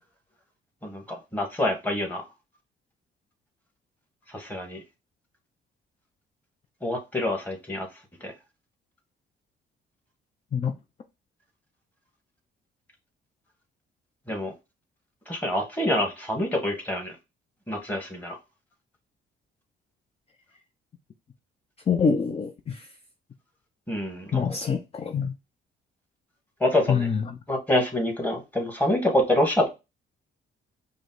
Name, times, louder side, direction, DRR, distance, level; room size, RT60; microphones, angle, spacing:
voice 1, 0.8-2.2 4.3-4.8 6.8-7.9 8.2-8.3 14.3-14.5 15.3-17.1 17.7-18.4 23.9-24.4 26.6-27.1 27.5-29.7, left 1 dB, 10° left, 1.4 m, -26 dB
voice 2, 21.9-22.9 24.3-25.3 26.9-27.4, left 6 dB, 30° left, 0.5 m, -25 dB
4.9 x 2.1 x 3.9 m
cardioid pair, 90°, 20 cm